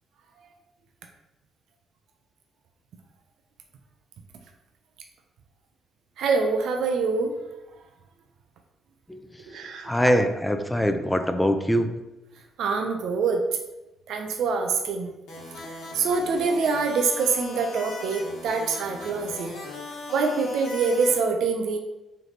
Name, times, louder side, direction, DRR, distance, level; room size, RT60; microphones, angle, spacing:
voice 1, 6.2-7.4 9.5-10.2 12.6-13.4 14.1-15.1 15.9-19.6 20.1-21.8, right 4 dB, 75° right, 4 dB, 0.5 m, -25 dB
voice 2, 9.8-12.0, equal, 5° left, 7 dB, 0.4 m, -23 dB
sound 1, 15.3-21.1, left 2 dB, 90° left, 1.2 m, -39 dB
3.3 x 3.1 x 3.9 m, 0.98 s
cardioid pair, 90°, 0 cm